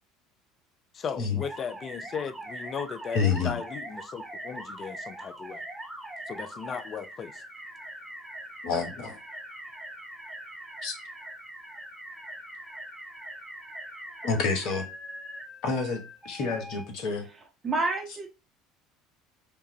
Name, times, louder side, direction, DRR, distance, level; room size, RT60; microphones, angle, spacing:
voice 1, 0.9-5.6 6.3-7.3, left 6 dB, 40° left, 0.4 m, -36 dB
sound 1, 1.4-16.9, right 1 dB, 10° right, 1.0 m, -42 dB
voice 2, 3.1-3.5 8.6-9.2 10.8-10.9 14.2-14.9 15.6-16.0 16.2-17.3, left 5 dB, 55° left, 1.0 m, -28 dB
voice 3, 17.6-18.3, right 3 dB, 30° right, 1.2 m, -28 dB
5.1 x 2.5 x 2.9 m
figure-of-eight pair, 65°, 0 cm